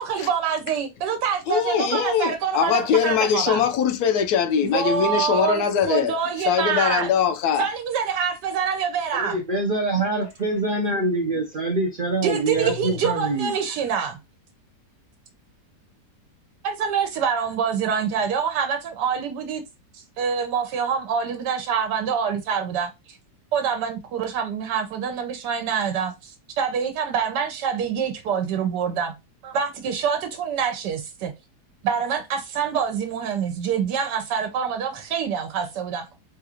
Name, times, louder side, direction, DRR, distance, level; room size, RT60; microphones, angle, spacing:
voice 1, 0.0-3.6 4.6-7.1 7.6-9.4 12.2-14.2 16.6-19.6 19.9-23.2 23.5-29.1 29.4-31.3 31.8-36.1, right 7 dB, 85° right, 1.2 m, -26 dB
voice 2, 1.5-6.2 6.4-7.7 10.0-10.1, left 7 dB, 75° left, 1.1 m, -22 dB
voice 3, 9.1-13.5, right 2 dB, 65° right, 0.5 m, -25 dB
3.8 x 2.4 x 2.8 m
omnidirectional pair, 1.8 m